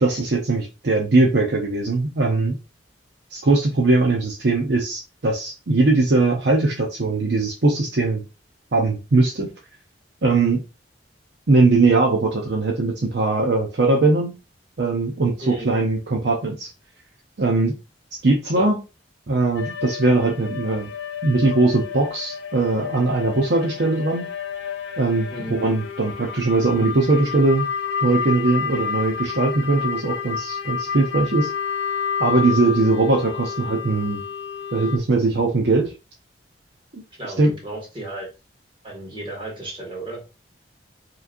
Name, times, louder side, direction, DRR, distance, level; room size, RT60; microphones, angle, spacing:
voice 1, 0.0-2.6 3.3-8.2 8.7-9.5 10.2-10.6 11.5-14.3 14.8-16.7 17.4-17.7 18.2-18.8 19.3-20.9 21.2-24.3 25.0-27.7 28.0-31.5 32.2-34.2 34.7-35.9 36.9-37.0 37.4-37.5, right 3 dB, 65° right, 0 dB, 0.7 m, -20 dB
sound 1, 19.6-35.0, left 7 dB, 85° left, 0.6 m, -30 dB
voice 2, 37.2-38.3 38.8-40.3, right 2 dB, 30° right, -3 dB, 2.0 m, -34 dB
4.8 x 3.1 x 2.6 m, 0.29 s
head